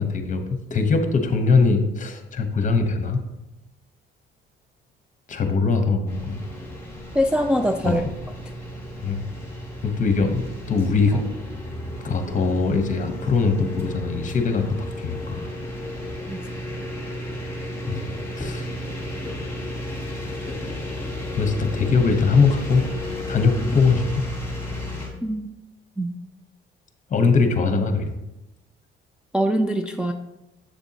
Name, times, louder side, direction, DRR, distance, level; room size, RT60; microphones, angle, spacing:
voice 1, 0.0-3.2 5.3-6.4 7.8-8.1 9.0-9.3 9.8-11.2 12.0-15.5 17.9-18.0 18.4-18.7 21.3-22.9 23.3-24.2 27.1-28.1, left 4 dB, 35° left, 6 dB, 1.0 m, -21 dB
sound 1, 6.1-25.1, left 1 dB, 10° left, 2.5 m, -33 dB
voice 2, 7.1-8.1 16.3-16.4 25.2-25.5 26.0-26.1 29.3-30.1, equal, 5° right, 4 dB, 0.3 m, -23 dB
7.7 x 6.9 x 2.9 m, 0.95 s
cardioid pair, 105°, 21 cm